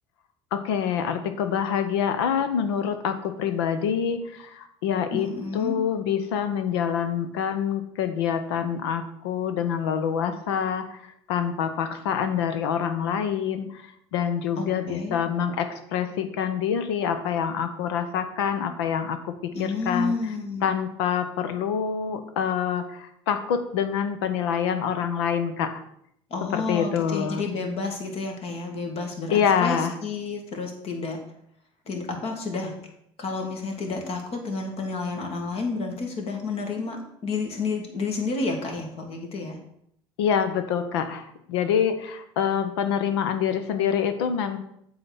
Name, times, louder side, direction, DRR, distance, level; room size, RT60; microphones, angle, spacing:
voice 1, 0.5-5.3 5.5-11.0 11.3-13.7 14.1-20.1 20.6-25.7 26.5-27.4 29.3-29.9 40.2-44.6, left 8 dB, 75° left, 9 dB, 0.8 m, -26 dB
voice 2, 5.1-5.8 14.6-15.2 19.5-20.7 26.3-31.2 31.9-32.8 33.2-39.6, left 3 dB, 50° left, 3 dB, 2.0 m, -30 dB
7.7 x 4.1 x 6.0 m, 0.73 s
hypercardioid pair, 65°, 13 cm